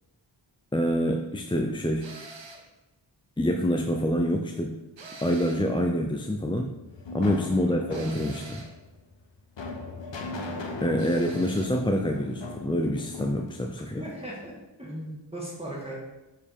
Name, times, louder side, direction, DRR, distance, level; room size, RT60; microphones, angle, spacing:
voice 1, 0.7-2.1 3.4-4.8 5.2-6.7 7.1-8.7 10.8-14.0, equal, 10° left, 2 dB, 0.5 m, -26 dB
sound 1, 2.0-2.7 5.0-5.7 7.9-8.8 11.0-11.8, right 3 dB, 75° right, 0.9 m, -45 dB
sound 2, 6.4-14.5, left 2 dB, 75° left, 0.9 m, -39 dB
voice 2, 13.8-14.5 14.8-16.0, right 1 dB, 15° right, -5 dB, 1.8 m, -38 dB
7.0 x 4.6 x 3.6 m, 1.0 s
wide cardioid pair, 40°, 45 cm